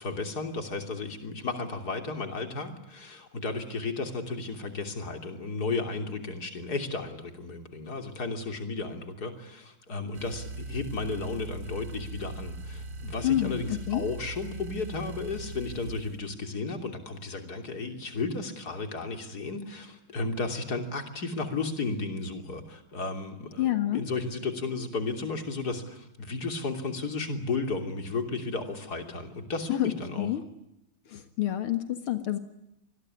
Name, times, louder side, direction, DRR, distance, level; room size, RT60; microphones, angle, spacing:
voice 1, 0.0-30.3, left 3 dB, 45° left, 5 dB, 3.6 m, -34 dB
sound 1, 10.1-16.2, right 2 dB, 60° right, 2.7 m, -40 dB
voice 2, 13.2-14.0 23.6-24.0 29.8-29.9 30.2-30.4 31.1-32.4, left 13 dB, 85° left, 8 dB, 2.5 m, -28 dB
27.0 x 21.0 x 9.9 m, 0.85 s
omnidirectional pair, 2.3 m